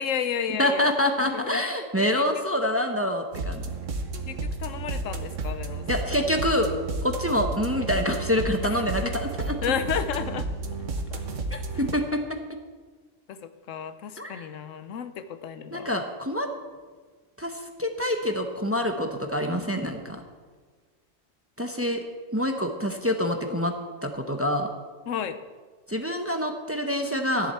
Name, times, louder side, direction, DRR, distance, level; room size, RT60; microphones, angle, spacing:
voice 1, 0.0-0.9 1.2-1.6 2.0-2.2 4.3-6.3 8.6-9.1 9.6-10.5 11.1-11.8 13.3-16.0 25.1-25.4, left 8 dB, 90° left, 11 dB, 1.1 m, -33 dB
voice 2, 0.6-3.6 5.9-6.7 7.0-9.5 11.5-12.4 14.2-14.4 15.7-16.5 17.4-20.2 21.6-22.0 22.3-23.7 24.0-24.7 25.9-27.5, left 1 dB, 15° right, 4 dB, 0.8 m, -26 dB
sound 1, 3.3-11.9, right 3 dB, 85° right, 1.5 m, -32 dB
14.5 x 10.5 x 4.4 m, 1.4 s
omnidirectional pair, 1.3 m